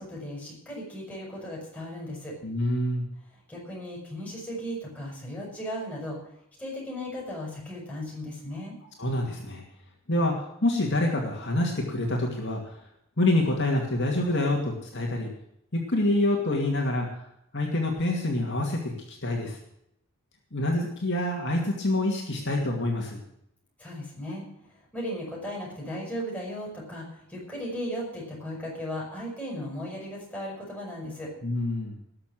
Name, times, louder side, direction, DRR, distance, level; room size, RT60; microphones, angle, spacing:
voice 1, 0.0-2.3 3.3-6.2 6.6-8.7 23.8-24.4 24.9-31.3, equal, 5° left, -4 dB, 6.8 m, -36 dB
voice 2, 2.4-3.1 9.0-9.6 10.1-10.3 10.6-12.7 13.2-15.3 15.7-17.1 17.5-19.6 20.5-23.2 31.4-31.9, left 1 dB, 55° left, 0 dB, 2.5 m, -26 dB
19.0 x 6.9 x 7.7 m, 0.77 s
head